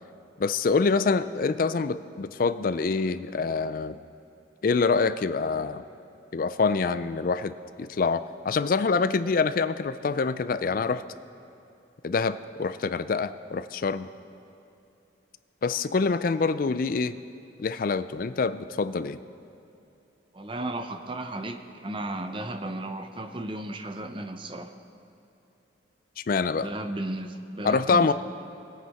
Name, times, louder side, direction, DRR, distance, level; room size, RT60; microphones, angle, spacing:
voice 1, 0.4-4.0 4.6-5.8 6.3-11.0 12.0-14.1 15.6-17.1 17.6-19.2 26.3-26.7 27.6-28.1, left 4 dB, 45° left, 13 dB, 0.4 m, -26 dB
voice 2, 20.3-24.7 26.6-28.1, right 1 dB, 25° right, 7 dB, 0.6 m, -34 dB
20.0 x 9.2 x 4.2 m, 2.7 s
head